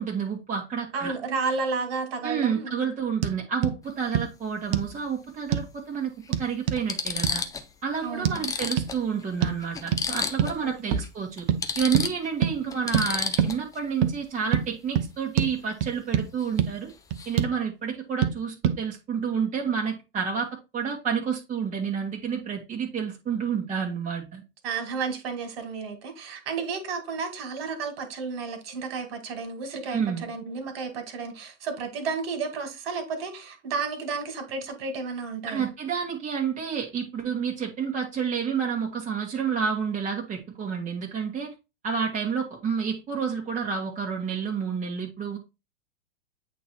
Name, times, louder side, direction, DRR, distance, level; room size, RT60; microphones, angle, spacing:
voice 1, 0.0-1.1 2.2-6.1 6.4-7.4 7.8-11.5 11.7-16.9 17.2-20.5 20.7-24.4 29.9-30.2 35.5-41.5 41.8-45.4, right 6 dB, 20° right, 1.6 m, -29 dB
voice 2, 0.9-2.8 8.0-8.4 10.6-11.0 12.6-12.8 24.6-35.7, right 4 dB, 55° right, 2.2 m, -32 dB
sound 1, 3.2-3.4 3.6-3.8 4.1-4.3 4.7-4.9 5.5-5.7 6.3-6.8 7.2-7.4 8.2-8.4 8.8-8.9 9.4-9.6 9.9-10.1 10.4-10.6 10.9-11.1 11.5-11.6 11.9-12.1 12.4-12.5 12.9-13.1 13.4-13.5 14.0-14.1 14.5-14.7 14.9-15.1 15.4-15.5 15.8-16.3 16.6-16.7 17.1-17.5 18.2-18.3 18.6-18.8, right 9 dB, 40° right, 0.8 m, -24 dB
sound 2, 3.8-4.0 5.5-5.6 6.3-6.4 6.8-7.7 8.0-8.1 8.3-10.6 10.9-11.1 11.4-13.8 16.4-16.6 16.9-17.4, left 5 dB, 10° left, 0.4 m, -32 dB
8.4 x 3.0 x 4.4 m
figure-of-eight pair, 100°, 35 cm